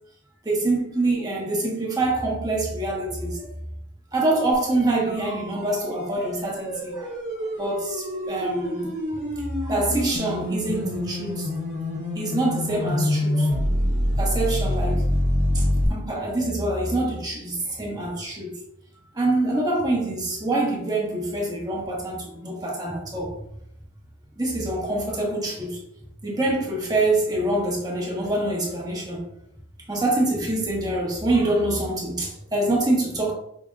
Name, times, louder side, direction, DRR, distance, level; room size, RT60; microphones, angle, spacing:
voice 1, 0.4-3.5 4.1-7.1 7.6-9.3 9.6-11.5 12.1-13.6 14.2-15.0 15.5-18.6 19.1-23.4 24.4-29.2 29.9-33.3, right 2 dB, 20° right, 1.3 m, -25 dB
sound 1, 4.5-15.9, left 1 dB, 40° right, 1.4 m, -26 dB
5.8 x 3.5 x 2.4 m
head